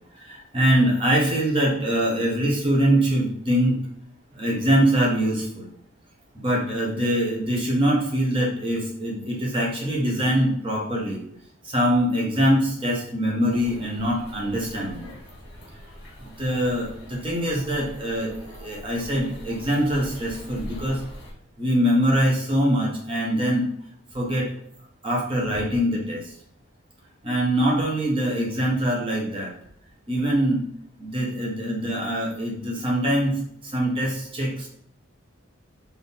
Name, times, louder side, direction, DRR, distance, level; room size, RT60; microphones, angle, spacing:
voice 1, 0.2-3.8 4.3-5.7 6.3-11.2 11.6-15.1 16.2-21.0 21.6-23.7 24.1-24.5 25.0-26.3 27.2-29.5 30.1-30.6 31.0-34.7, equal, 25° right, -3 dB, 0.9 m, -23 dB
sound 1, 13.5-21.3, equal, 55° left, 1.2 m, -42 dB
3.6 x 2.7 x 4.0 m, 0.68 s
head